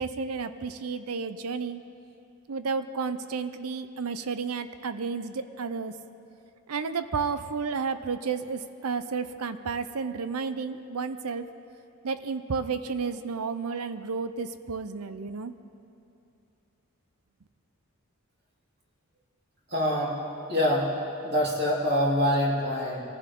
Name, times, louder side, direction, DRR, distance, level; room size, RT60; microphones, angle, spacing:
voice 1, 0.0-1.8 2.5-5.9 6.7-11.5 12.0-15.5, right 5 dB, 85° right, 11 dB, 0.6 m, -32 dB
voice 2, 19.7-20.2 20.5-20.9 21.2-23.0, equal, 45° right, -5 dB, 3.4 m, -25 dB
25.0 x 15.0 x 3.8 m, 2.6 s
head